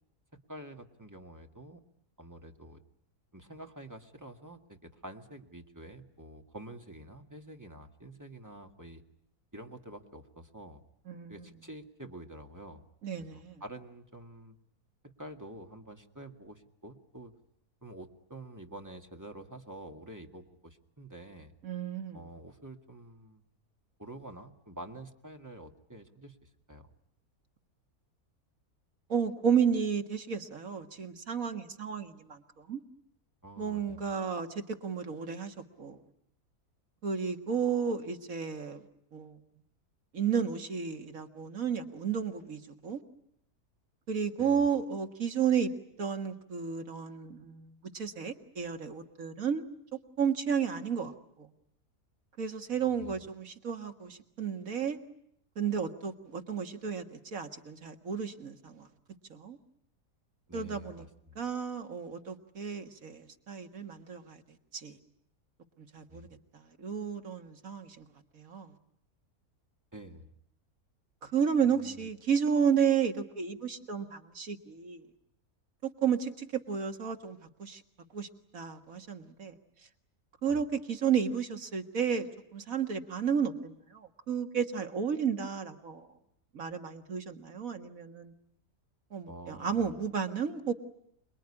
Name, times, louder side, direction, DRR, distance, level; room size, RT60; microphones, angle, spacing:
voice 1, 0.5-1.8 2.2-2.8 3.3-9.0 9.5-10.8 11.3-12.8 13.2-14.6 15.0-17.3 17.8-21.5 22.1-23.4 24.0-26.9 33.4-34.0 44.4-44.6 52.7-53.3 60.5-61.4 66.1-66.4 69.9-70.3 71.6-72.1 80.5-80.6 89.3-89.9, right 1 dB, 10° right, 2.0 m, -48 dB
voice 2, 11.1-11.5 13.0-13.6 21.6-22.2 29.1-32.8 33.6-36.0 37.0-38.8 39.1-39.4 40.1-43.0 44.1-45.7 46.0-49.6 50.2-51.1 51.4-51.5 52.4-55.0 55.6-58.9 59.3-59.6 60.5-61.0 61.4-64.4 64.7-65.0 65.9-66.3 66.5-68.1 68.3-68.7 71.2-75.0 76.0-77.8 78.1-78.3 78.5-79.5 80.4-82.3 82.5-86.1 86.5-88.3 89.1-90.7, right 7 dB, 65° right, 2.1 m, -32 dB
27.5 x 21.5 x 9.9 m
omnidirectional pair, 1.6 m